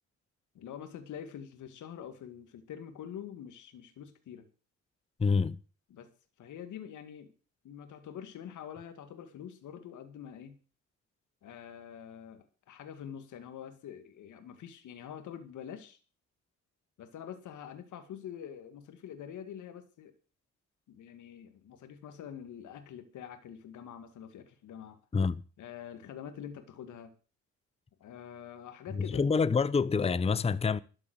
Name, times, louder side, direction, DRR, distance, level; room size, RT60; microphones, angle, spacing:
voice 1, 0.5-4.5 5.9-6.1 6.4-7.3 7.6-10.6 11.4-16.0 17.0-20.1 20.9-25.0 25.6-27.1 28.0-29.2, left 9 dB, 75° left, 2.2 m, -45 dB
voice 2, 5.2-5.6 25.1-25.4 28.9-30.8, left 5 dB, 20° left, 0.7 m, -27 dB
13.0 x 7.7 x 8.0 m
cardioid pair, 90°, 30 cm